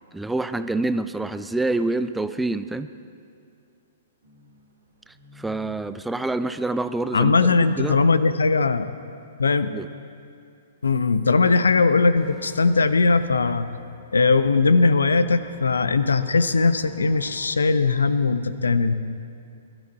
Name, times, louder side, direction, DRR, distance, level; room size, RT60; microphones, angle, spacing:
voice 1, 0.1-2.9 5.4-7.4 7.8-8.0 9.7-9.9, right 2 dB, 5° right, 12 dB, 0.4 m, -26 dB
sound 1, 4.2-9.1, left 2 dB, 60° right, 2.3 m, -53 dB
voice 2, 7.1-8.9 9.4-9.7 10.8-13.7 14.1-18.9, left 4 dB, 75° left, 13 dB, 0.6 m, -19 dB
sound 2, 12.2-17.5, left 1 dB, 20° left, 4.6 m, -52 dB
21.0 x 12.0 x 4.1 m, 2.4 s
figure-of-eight pair, 110°, 0 cm